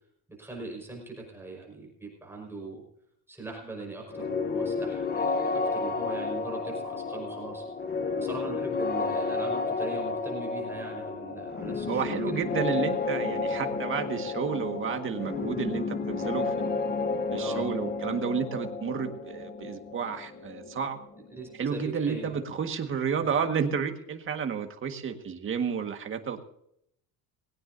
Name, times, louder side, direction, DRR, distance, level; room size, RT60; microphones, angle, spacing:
voice 1, 0.4-2.8 3.3-7.6 8.1-12.4 17.4-17.7 21.3-22.6 23.2-23.3, right 2 dB, 5° right, -1 dB, 5.1 m, -40 dB
sound 1, 4.1-21.8, left 4 dB, 25° left, 0.9 m, -31 dB
voice 2, 11.9-16.8 17.3-21.0 21.6-26.4, right 6 dB, 30° right, 6 dB, 1.7 m, -31 dB
20.5 x 17.0 x 2.7 m, 0.72 s
cardioid pair, 175°, 39 cm